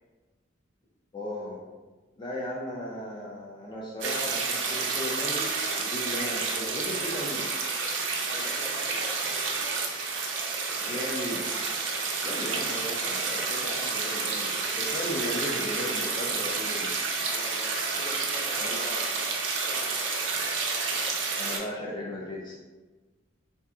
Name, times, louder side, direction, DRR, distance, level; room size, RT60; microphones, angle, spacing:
voice 1, 1.1-1.6 2.2-7.5 10.9-11.5 12.2-14.5 14.8-16.9 18.6-18.8 21.4-22.5, left 1 dB, 25° left, -5 dB, 0.4 m, -36 dB
sound 1, 4.0-21.6, right 4 dB, 70° right, 0.5 m, -30 dB
voice 2, 8.3-9.7 10.8-11.2 17.3-19.9, left 1 dB, 65° left, -8 dB, 1.3 m, -43 dB
3.2 x 2.7 x 2.3 m, 1.2 s
head